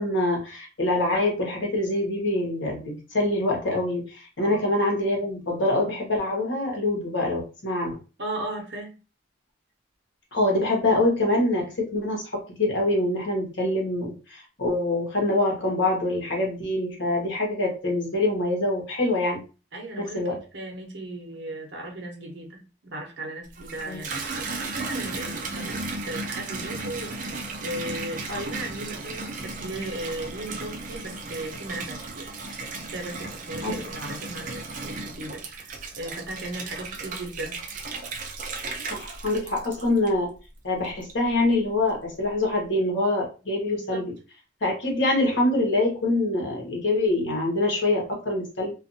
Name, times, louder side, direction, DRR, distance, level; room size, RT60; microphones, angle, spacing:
voice 1, 0.0-8.0 10.3-19.4 20.0-20.4 23.9-24.0 33.6-33.7 38.9-40.3 40.6-44.1 44.6-48.7, left 2 dB, 65° left, 0 dB, 1.1 m, -25 dB
voice 2, 8.2-9.0 19.7-32.3 32.9-35.7 36.0-37.6 43.7-44.1, right 1 dB, 60° right, 1 dB, 0.8 m, -36 dB
Water tap faucet / Bathtub (filling or washing), 23.4-40.4 40.8-41.4, right 3 dB, 40° right, 0.4 m, -35 dB
2.5 x 2.4 x 2.6 m, 0.32 s
head